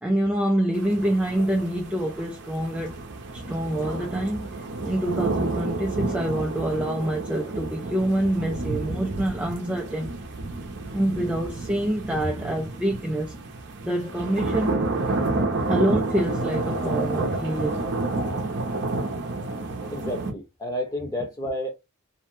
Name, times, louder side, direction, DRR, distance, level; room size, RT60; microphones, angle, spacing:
voice 1, 0.0-3.0 3.3-10.1 10.9-13.3 13.8-14.8 15.7-18.0, right 1 dB, 5° right, 0.3 m, -26 dB
sound 1, 0.7-20.3, right 2 dB, 50° right, 0.6 m, -30 dB
voice 2, 19.6-21.7, left 1 dB, 15° left, 0.9 m, -31 dB
2.7 x 2.1 x 3.1 m
head